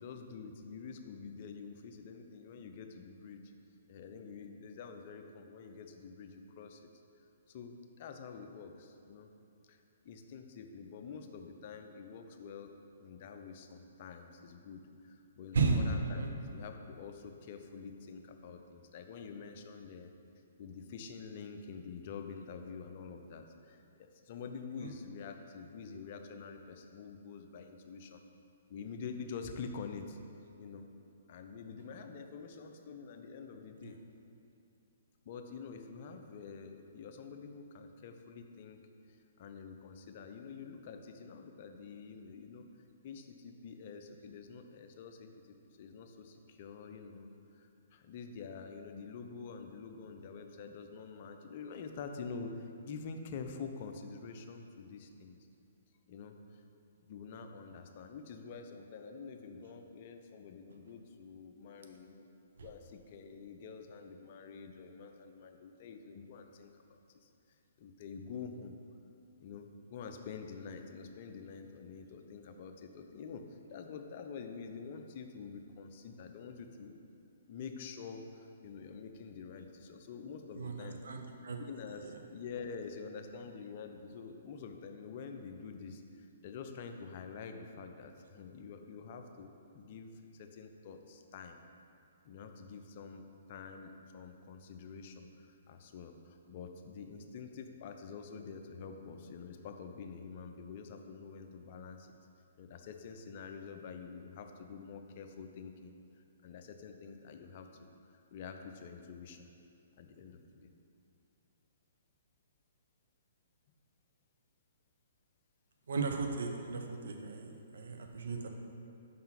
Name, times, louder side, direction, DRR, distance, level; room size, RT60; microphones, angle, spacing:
voice 1, 0.0-3.4 3.9-6.8 7.5-9.3 9.7-16.2 16.5-20.1 20.6-28.2 28.7-30.2 30.6-30.9 31.3-34.0 35.3-38.8 39.4-42.7 43.0-55.4 56.1-56.3 57.1-62.2 62.6-67.3 67.8-68.7 69.4-73.4 73.7-77.0 77.5-81.0 81.7-91.6 92.2-93.2 93.5-102.1 102.6-105.9 106.4-107.7 108.3-109.5 110.0-110.7, left 5 dB, 45° left, 5 dB, 0.5 m, -47 dB
voice 2, 15.5-16.3 24.8-24.9 33.8-33.9 62.6-62.7 80.6-81.6 82.0-82.1 115.9-118.5, right 4 dB, 70° right, 3 dB, 0.7 m, -34 dB
5.5 x 3.8 x 5.8 m, 2.5 s
figure-of-eight pair, 130°, 0 cm